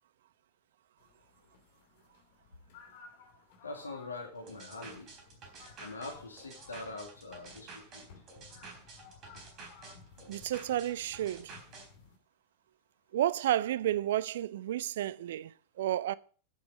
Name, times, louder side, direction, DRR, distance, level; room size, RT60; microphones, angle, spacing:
sound 1, 1.0-12.2, left 5 dB, 50° left, 2.8 m, -57 dB
voice 1, 3.6-5.1 5.8-8.1, left 3 dB, 75° left, 2.2 m, -43 dB
sound 2, 4.5-11.9, right 4 dB, 35° right, 4.0 m, -50 dB
voice 2, 10.3-11.5 13.1-16.1, right 12 dB, 60° right, 0.4 m, -31 dB
9.6 x 8.8 x 5.2 m
figure-of-eight pair, 90°, 0 cm